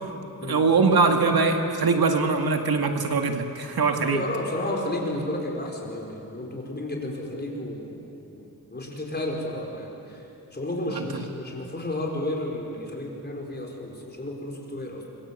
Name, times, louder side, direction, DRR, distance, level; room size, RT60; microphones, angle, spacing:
voice 1, 0.5-4.2 10.9-11.0, right 4 dB, 80° right, 4 dB, 2.1 m, -22 dB
voice 2, 4.1-8.0 8.3-9.9 10.5-15.0, left 1 dB, 25° left, 0 dB, 4.6 m, -32 dB
26.0 x 23.0 x 8.3 m, 2.8 s
wide cardioid pair, 125°, 36 cm